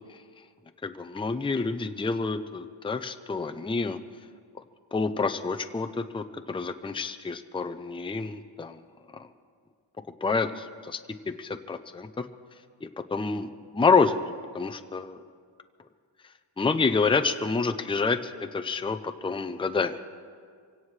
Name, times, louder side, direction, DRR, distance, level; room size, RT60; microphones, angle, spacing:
voice 1, 0.8-4.0 4.9-8.8 9.1-9.3 10.2-11.0 11.3-12.2 13.1-14.2 14.5-15.2 16.6-20.0, left 4 dB, 10° left, 7 dB, 0.5 m, -28 dB
24.5 x 17.0 x 3.2 m, 2.1 s
wide cardioid pair, 115°, 48 cm